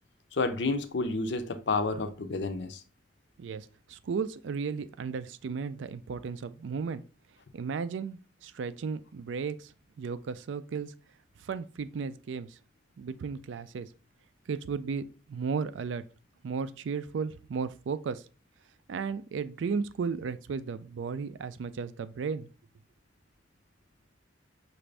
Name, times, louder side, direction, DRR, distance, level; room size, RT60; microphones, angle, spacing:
voice 1, 0.3-2.8, left 3 dB, 65° left, 0.5 m, -30 dB
voice 2, 3.4-7.0 7.5-9.7 10.0-10.9 11.4-12.6 13.0-13.9 14.5-16.0 16.4-18.2 18.9-22.5, right 5 dB, 75° right, 0.4 m, -34 dB
5.9 x 2.5 x 3.2 m
head